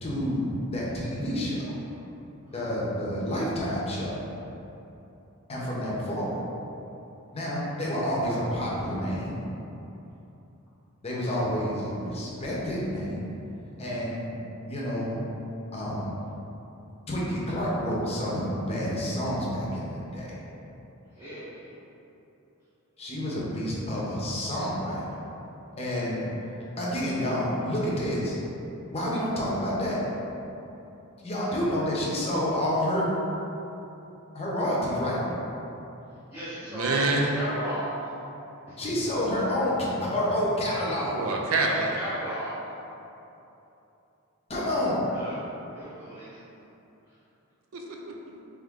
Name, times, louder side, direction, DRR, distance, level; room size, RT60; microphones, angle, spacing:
voice 1, 0.0-1.7 2.5-4.2 5.5-6.4 7.3-9.4 11.0-13.2 13.8-14.3 14.7-15.2 15.7-16.1 17.1-20.3 23.0-25.0 25.8-26.2 26.5-28.4 28.9-30.0 31.2-33.1 34.3-35.2 38.8-39.7 40.0-41.2 44.5-45.0, equal, 30° left, -5 dB, 0.8 m, -29 dB
voice 2, 21.1-21.7 36.3-38.1 38.7-38.8 41.6-42.6 45.1-45.4 45.7-46.4, equal, 15° right, -13 dB, 0.9 m, -35 dB
voice 3, 36.7-37.3 41.1-42.0 47.7-48.4, right 3 dB, 70° right, 0 dB, 0.5 m, -27 dB
3.6 x 3.3 x 3.6 m, 2.9 s
head